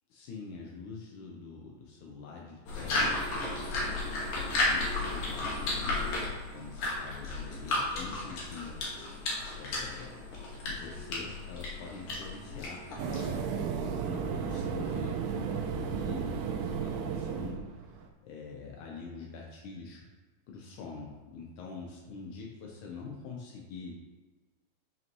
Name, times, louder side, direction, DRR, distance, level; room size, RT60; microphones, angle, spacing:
voice 1, 0.1-4.0 4.7-9.0 9.5-10.2 10.6-20.0 20.5-23.9, left 4 dB, 85° left, -1 dB, 1.7 m, -45 dB
sound 1, 2.7-13.5, left 2 dB, 60° left, 2.9 m, -34 dB
sound 2, 13.0-18.1, right 6 dB, 85° right, 2.8 m, -34 dB
10.5 x 5.6 x 3.1 m, 1.3 s
omnidirectional pair, 4.8 m